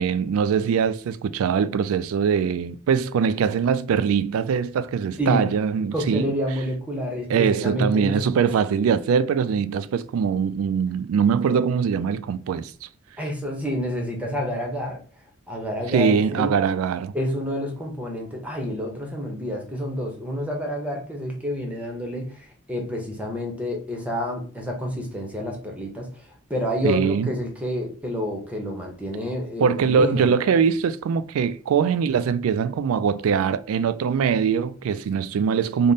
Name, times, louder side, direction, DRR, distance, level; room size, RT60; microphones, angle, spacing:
voice 1, 0.0-6.3 7.3-12.9 15.9-17.1 26.8-27.3 29.6-35.9, right 6 dB, 75° right, 0.3 m, -22 dB
voice 2, 5.2-5.5 5.9-8.5 13.2-15.0 15.5-16.6 17.1-30.3, equal, 5° right, 0.7 m, -29 dB
3.4 x 2.1 x 3.9 m
head